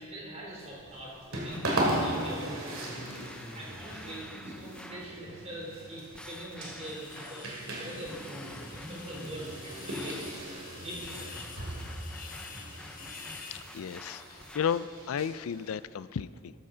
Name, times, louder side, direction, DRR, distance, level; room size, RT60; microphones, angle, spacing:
voice 1, 0.0-2.7 3.5-10.2 10.7-11.8, right 1 dB, 30° right, -4 dB, 3.6 m, -43 dB
sound 1, 0.6-15.7, right 1 dB, 70° right, 2.7 m, -38 dB
sound 2, 1.5-5.2 6.1-7.6 8.0-10.3 11.0-14.9, left 1 dB, 5° left, 0.5 m, -47 dB
sound 3, 4.4-5.3 5.7-5.9 6.2-6.3 6.5-13.6, left 5 dB, 40° left, 1.2 m, -48 dB
voice 2, 13.7-16.5, left 7 dB, 70° left, 16 dB, 0.4 m, -33 dB
13.5 x 13.0 x 3.9 m, 2.6 s
head